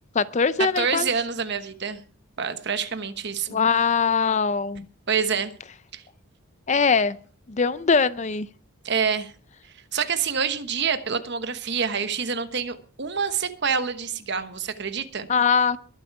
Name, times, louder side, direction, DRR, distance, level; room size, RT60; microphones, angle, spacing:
voice 1, 0.1-1.1 3.5-4.9 6.7-7.2 7.5-8.5 15.3-15.8, left 5 dB, 35° left, 16 dB, 0.5 m, -21 dB
voice 2, 0.8-2.0 2.4-3.6 5.1-5.5 5.9-6.0 8.8-9.3 9.9-15.3, right 6 dB, 50° right, 10 dB, 1.2 m, -27 dB
22.0 x 8.2 x 4.8 m, 0.41 s
head